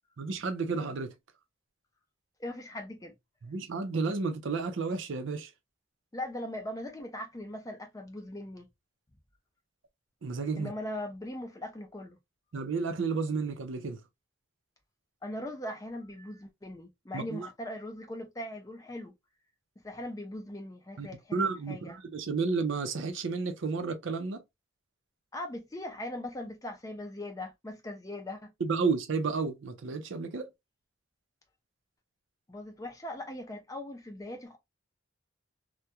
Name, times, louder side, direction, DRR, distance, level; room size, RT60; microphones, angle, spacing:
voice 1, 0.2-1.1 3.4-5.5 10.2-10.7 12.5-14.0 17.1-17.5 21.0-24.4 28.6-30.5, right 4 dB, 70° right, 0.5 m, -32 dB
voice 2, 2.4-3.1 6.1-8.7 10.6-12.2 15.2-19.1 19.8-22.0 25.3-28.5 32.5-34.6, left 1 dB, 15° left, 0.5 m, -40 dB
2.3 x 2.1 x 2.7 m
head